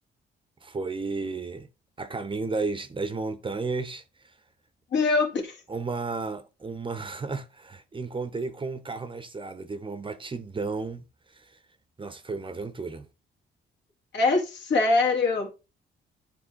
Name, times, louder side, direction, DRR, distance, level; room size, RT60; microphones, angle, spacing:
voice 1, 0.6-1.7 2.0-4.0 5.7-11.0 11.3-11.6 12.0-13.1, right 3 dB, 25° right, 0.8 m, -33 dB
voice 2, 4.9-5.6 14.1-15.5, left 3 dB, 65° left, 2.1 m, -23 dB
8.9 x 3.5 x 3.7 m
cardioid pair, 90°, 20 cm